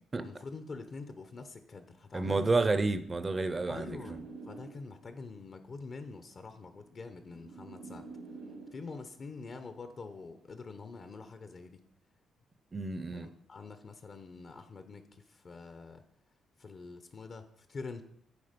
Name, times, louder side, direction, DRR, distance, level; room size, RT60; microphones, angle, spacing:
voice 1, 0.2-2.5 3.7-8.1 8.7-11.8 13.1-16.0 16.6-18.0, left 4 dB, 45° left, 9 dB, 0.7 m, -45 dB
voice 2, 2.1-4.0 12.7-13.3, right 3 dB, 25° right, 11 dB, 0.6 m, -30 dB
sound 1, 3.0-5.1 6.1-9.1 10.1-10.5, right 3 dB, 80° right, 2.0 m, -49 dB
9.6 x 4.3 x 5.2 m, 0.70 s
cardioid pair, 90°, 0 cm